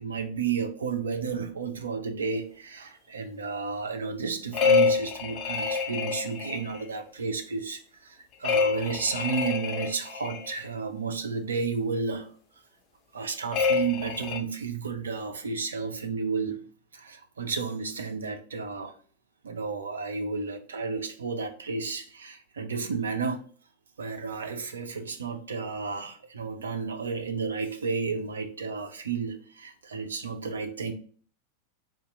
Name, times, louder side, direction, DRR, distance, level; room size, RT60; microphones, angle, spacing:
voice 1, 0.0-12.3 13.1-16.6 16.9-18.9 19.4-23.4 24.0-30.9, right 5 dB, 70° right, 0.5 m, -32 dB
sound 1, 4.5-6.8 8.4-10.5 13.5-14.4, left 5 dB, 35° left, 0.7 m, -26 dB
4.2 x 2.4 x 3.6 m
figure-of-eight pair, 90°, 0 cm